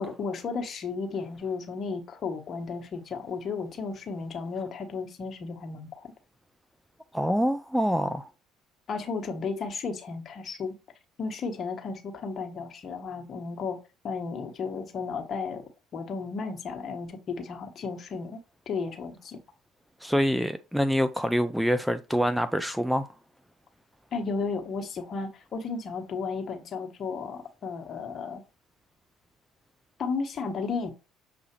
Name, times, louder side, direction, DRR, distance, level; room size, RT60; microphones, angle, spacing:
voice 1, 0.0-6.0 8.9-10.7 11.2-13.8 14.0-15.6 15.9-19.4 24.1-28.4 30.0-30.9, left 4 dB, 45° left, 1.1 m, -34 dB
voice 2, 7.1-8.3 20.0-23.1, equal, ahead, 0.4 m, -25 dB
6.7 x 2.4 x 3.0 m
hypercardioid pair, 60°, 0 cm